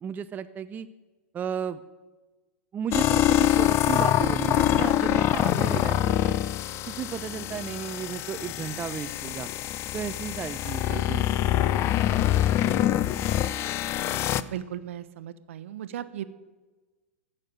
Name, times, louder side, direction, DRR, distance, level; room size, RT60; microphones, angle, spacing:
voice 1, 0.0-0.9 1.3-1.8 2.7-6.4 6.9-9.5 9.9-11.5, right 8 dB, 25° right, 10 dB, 0.5 m, -34 dB
sound 1, 2.9-14.4, left 12 dB, 35° left, 0.5 m, -25 dB
voice 2, 14.4-16.2, right 11 dB, 65° right, 13 dB, 0.9 m, -36 dB
14.5 x 6.6 x 9.0 m, 1.2 s
hypercardioid pair, 105°, 7 cm